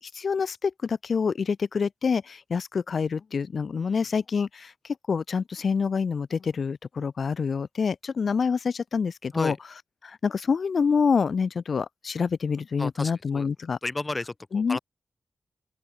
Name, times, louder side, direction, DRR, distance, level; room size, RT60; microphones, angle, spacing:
voice 1, 0.0-4.7 5.1-9.5 10.0-13.8 14.5-14.8, left 5 dB, 70° left, 0.9 m, -26 dB
voice 2, 12.8-13.5 13.8-14.8, left 2 dB, 30° left, 5.7 m, -33 dB
open air
cardioid pair, 70°, 0 cm